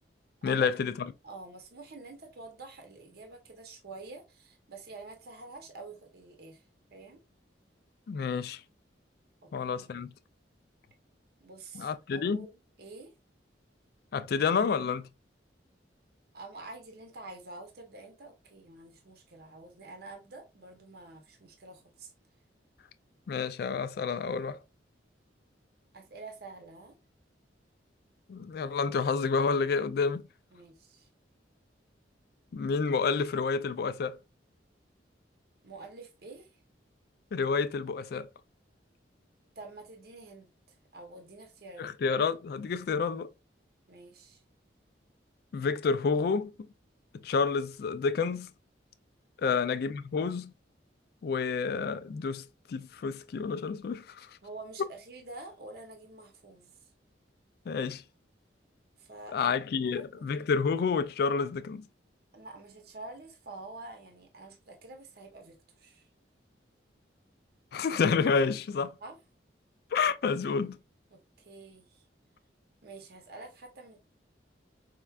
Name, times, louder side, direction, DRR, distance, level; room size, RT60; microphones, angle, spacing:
voice 1, 0.4-1.1 8.1-8.6 9.5-10.1 11.7-12.5 14.1-15.1 23.3-24.6 28.3-30.3 32.5-34.2 37.3-38.3 41.8-43.3 45.5-46.5 47.2-48.5 49.4-50.5 51.2-54.3 57.7-58.0 59.3-61.9 67.7-68.9 69.9-70.8, left 5 dB, 55° left, 0.3 m, -29 dB
voice 2, 1.2-6.6 6.9-7.2 9.4-10.0 11.4-13.1 16.3-22.1 25.9-26.9 30.5-31.1 35.6-36.5 39.6-40.5 40.9-41.9 43.9-44.4 49.4-49.6 54.4-56.7 59.0-60.3 62.3-66.1 69.0-69.2 71.1-72.0 72.8-74.0, right 3 dB, 55° right, 0.7 m, -48 dB
4.4 x 2.2 x 2.3 m
head